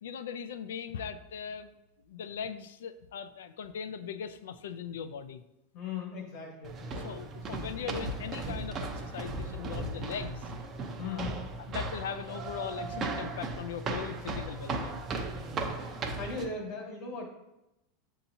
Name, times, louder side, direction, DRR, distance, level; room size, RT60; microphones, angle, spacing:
voice 1, 0.0-1.7 2.1-5.4 7.0-10.4 11.0-11.3 11.7-15.0, left 7 dB, 80° left, 10 dB, 0.3 m, -39 dB
voice 2, 5.7-7.3 11.0-11.4 15.3-17.2, left 4 dB, 60° left, -1 dB, 1.3 m, -39 dB
sound 1, 6.6-16.4, right 3 dB, 35° right, 0.6 m, -37 dB
6.6 x 2.8 x 2.7 m, 0.91 s
hypercardioid pair, 105°, 0 cm